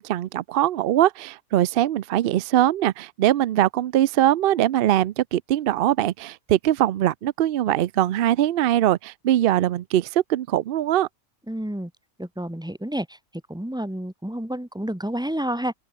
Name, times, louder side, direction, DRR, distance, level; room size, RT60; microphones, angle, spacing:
voice 1, 0.0-11.1, right 12 dB, 65° right, 0.6 m, -22 dB
voice 2, 11.5-11.9 12.2-13.2 13.5-15.7, right 1 dB, 5° right, 1.2 m, -29 dB
open air
omnidirectional pair, 1.4 m